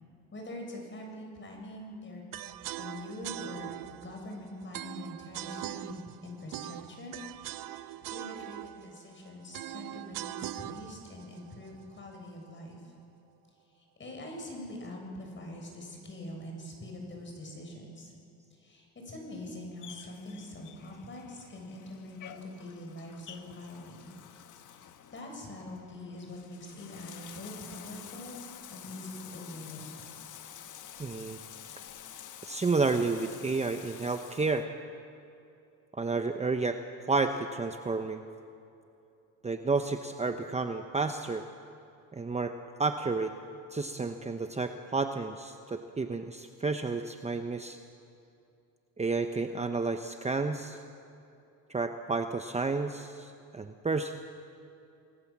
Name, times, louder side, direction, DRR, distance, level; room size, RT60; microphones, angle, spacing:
voice 1, 0.3-2.2 2.8-7.2 7.5-12.9 13.7-18.1 18.5-24.1 24.7-28.4 28.7-30.1, left 1 dB, 30° left, 1 dB, 7.5 m, -44 dB
sound 1, 2.3-12.4, right 14 dB, 65° right, 0.8 m, -42 dB
Bathtub (filling or washing), 19.8-34.6, left 9 dB, 55° left, 1.5 m, -49 dB
voice 2, 31.0-31.4 32.4-34.7 35.9-36.8 37.1-38.2 39.4-41.4 42.1-42.5 42.8-43.3 43.7-47.8 49.0-50.8 51.7-54.1, right 3 dB, 20° right, 6 dB, 1.0 m, -31 dB
29.0 x 19.5 x 7.5 m, 2.7 s
cardioid pair, 105°, 37 cm